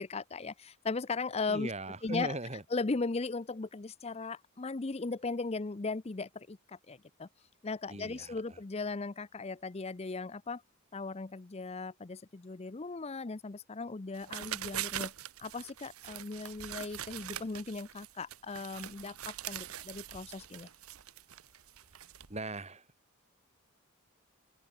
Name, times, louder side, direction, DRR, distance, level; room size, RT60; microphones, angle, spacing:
voice 1, 0.0-1.7 2.0-2.4 2.7-7.3 7.6-10.6 10.9-15.1 15.4-20.7, left 3 dB, 30° left, 0.5 m, -37 dB
voice 2, 1.5-2.6 7.9-8.6 22.3-22.9, right 2 dB, 30° right, 3.3 m, -39 dB
sound 1, 14.1-22.4, right 11 dB, 80° right, 1.1 m, -43 dB
open air
head